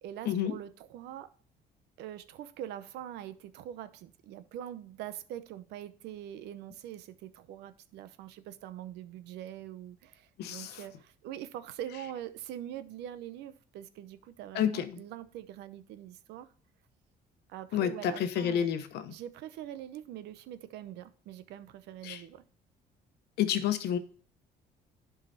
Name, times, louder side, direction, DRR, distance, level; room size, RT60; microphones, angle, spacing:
voice 1, 0.0-1.3 2.0-16.5 17.5-18.7 19.1-22.4, right 11 dB, 85° right, 0.8 m, -43 dB
voice 2, 10.4-10.8 14.5-15.0 17.7-19.2 22.0-22.2 23.4-24.0, left 9 dB, 75° left, 1.0 m, -30 dB
11.0 x 4.8 x 4.2 m
cardioid pair, 110°, 17 cm